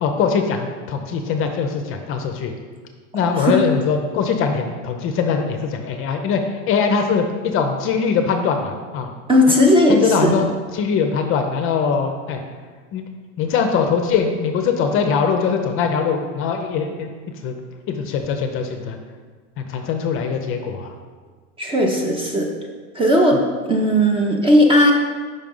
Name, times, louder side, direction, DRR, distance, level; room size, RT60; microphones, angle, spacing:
voice 1, 0.0-2.5 3.1-9.1 9.9-10.5 10.7-12.4 12.9-13.0 13.4-17.1 17.4-17.6 17.9-19.0 19.6-20.9, left 6 dB, 35° left, 5 dB, 0.5 m, -21 dB
voice 2, 3.1-3.6 9.3-10.4 21.6-22.5 22.9-23.4 23.7-24.9, equal, 15° right, 0 dB, 0.5 m, -16 dB
5.4 x 3.6 x 5.3 m, 1.5 s
supercardioid pair, 135°, 37 cm